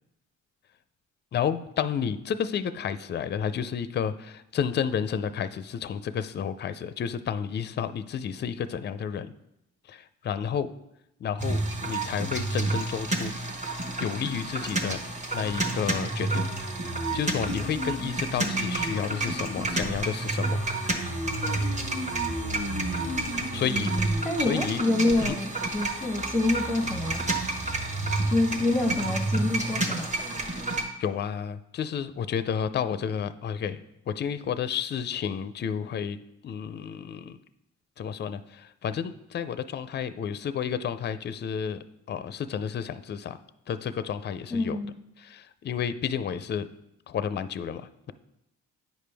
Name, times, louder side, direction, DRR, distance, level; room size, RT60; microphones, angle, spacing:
voice 1, 1.3-9.3 9.9-10.7 11.2-13.3 14.0-15.0 15.3-16.5 17.1-20.6 23.5-23.9 24.4-24.8 25.2-25.4 31.0-36.2 36.4-37.4 38.0-43.4 43.7-44.8 45.2-46.7 47.1-48.1, left 7 dB, 35° left, 13 dB, 0.4 m, -31 dB
sound 1, 11.4-30.8, right 2 dB, 25° right, 1.1 m, -29 dB
voice 2, 24.2-27.2 28.3-30.1 44.5-44.9, left 2 dB, ahead, 0 dB, 0.8 m, -27 dB
9.2 x 5.1 x 3.4 m, 0.82 s
cardioid pair, 90°, 30 cm